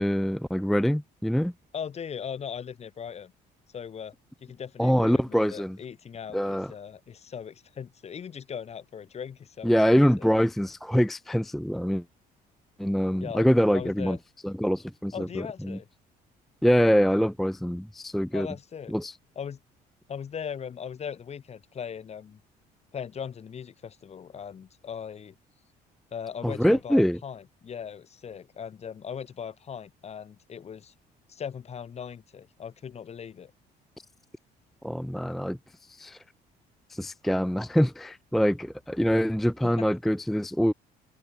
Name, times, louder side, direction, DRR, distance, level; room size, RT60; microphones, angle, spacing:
voice 1, 0.0-1.5 4.8-5.8 6.3-6.7 9.6-12.0 12.8-14.2 14.4-15.8 16.6-18.5 18.9-19.2 26.4-27.2 34.8-36.2 36.9-40.7, equal, ahead, 0.5 m, -24 dB
voice 2, 1.7-3.3 3.7-4.1 4.4-10.3 13.2-13.5 13.7-14.2 15.1-15.9 18.3-19.0 19.4-19.6 20.1-22.4 22.9-25.4 26.1-30.9 31.3-33.5 39.6-39.9, left 7 dB, 40° left, 1.8 m, -39 dB
open air
cardioid pair, 110°, 17 cm